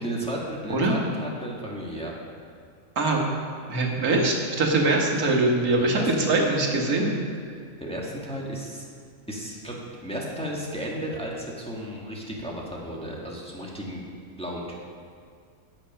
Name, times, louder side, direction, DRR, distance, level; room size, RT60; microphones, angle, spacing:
voice 1, 0.0-2.1 5.8-7.4 7.8-8.8 9.3-9.7 10.0-14.1 14.4-14.8, right 1 dB, 5° left, -3 dB, 1.6 m, -34 dB
voice 2, 3.7-7.1, right 2 dB, 90° right, 0 dB, 1.9 m, -22 dB
16.5 x 5.9 x 5.7 m, 2.2 s
omnidirectional pair, 1.5 m